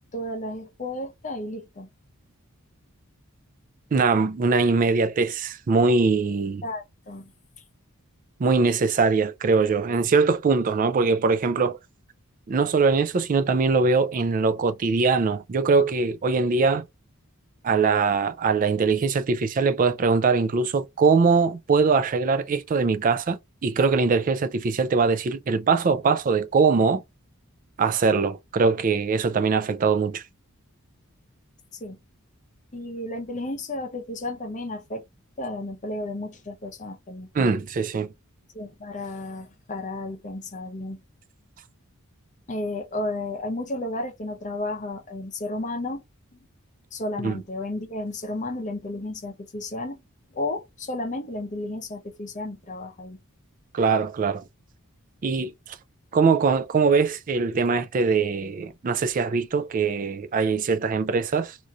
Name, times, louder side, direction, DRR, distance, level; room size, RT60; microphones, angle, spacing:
voice 1, 0.1-1.9 6.6-7.3 31.8-32.0 32.7-35.0 35.4-37.3 38.5-41.0 42.5-46.0 46.3-46.4 46.9-50.0 50.3-53.2, left 2 dB, 35° left, 0.7 m, -33 dB
voice 2, 3.9-6.6 8.4-11.8 12.5-16.9 17.6-27.0 27.8-30.2 37.3-38.1 47.2-47.3 53.7-54.4 55.2-55.5 56.1-61.6, right 4 dB, 40° right, 0.3 m, -22 dB
2.9 x 2.6 x 2.3 m
head